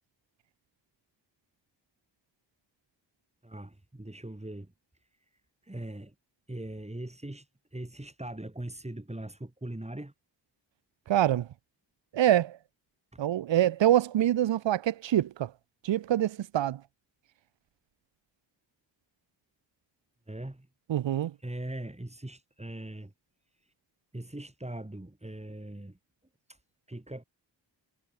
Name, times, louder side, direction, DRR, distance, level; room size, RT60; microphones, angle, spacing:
voice 1, 3.4-4.7 5.7-6.1 6.5-7.4 7.7-10.1 13.1-13.2 20.3-20.7 21.4-23.1 24.1-26.0 26.9-27.2, right 1 dB, 15° right, 3.3 m, -40 dB
voice 2, 11.1-11.5 12.1-12.6 13.2-15.5 15.8-16.8 20.9-21.3, right 12 dB, 80° right, 0.7 m, -25 dB
cardioid pair, 40°, 44 cm